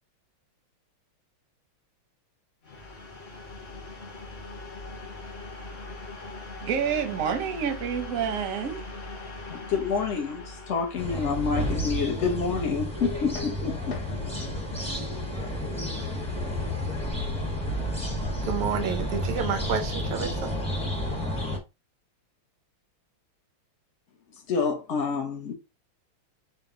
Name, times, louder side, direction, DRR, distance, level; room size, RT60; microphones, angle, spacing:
sound 1, 2.6-14.3, left 2 dB, 45° left, 0.9 m, -42 dB
voice 1, 6.6-8.8, right 7 dB, 65° right, 0.8 m, -28 dB
voice 2, 9.5-14.0 24.5-25.5, left 5 dB, 75° left, 0.6 m, -28 dB
sound 2, 11.0-21.6, left 1 dB, 5° left, 0.4 m, -31 dB
voice 3, 18.4-20.5, right 7 dB, 85° right, 1.6 m, -29 dB
5.1 x 2.1 x 3.7 m
omnidirectional pair, 2.3 m